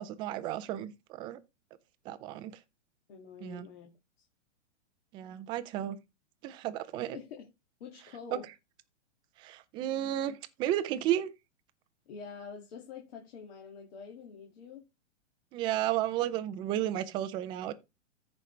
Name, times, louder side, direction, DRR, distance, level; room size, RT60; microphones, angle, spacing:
voice 1, 0.0-1.4 2.0-2.6 3.4-3.7 5.1-6.0 6.4-7.2 8.3-8.4 9.4-11.3 15.5-17.7, right 12 dB, 15° right, 0.4 m, -33 dB
voice 2, 3.1-3.9 4.2-4.3 7.0-7.5 7.8-8.5 12.1-14.9, left 6 dB, 55° left, 2.1 m, -46 dB
14.0 x 5.3 x 3.2 m
hypercardioid pair, 140°, 36 cm